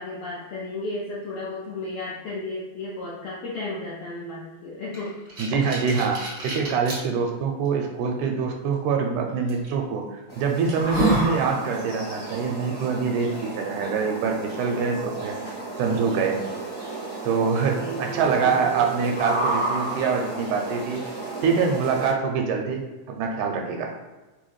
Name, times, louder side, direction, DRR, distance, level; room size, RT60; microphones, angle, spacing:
voice 1, 0.0-5.2 17.7-18.7, left 2 dB, 80° left, -6 dB, 1.4 m, -34 dB
sound 1, 4.9-7.0 7.7-7.8 9.5-9.7 10.2-10.3 10.7-11.3, right 1 dB, 65° right, 0.9 m, -27 dB
voice 2, 5.4-15.4 15.8-16.4 17.2-21.0 21.4-23.9, right 5 dB, 85° right, 2 dB, 2.0 m, -25 dB
sound 2, 10.3-22.1, right 2 dB, 55° left, 0.9 m, -32 dB
4.8 x 2.2 x 3.1 m, 1.2 s
omnidirectional pair, 3.5 m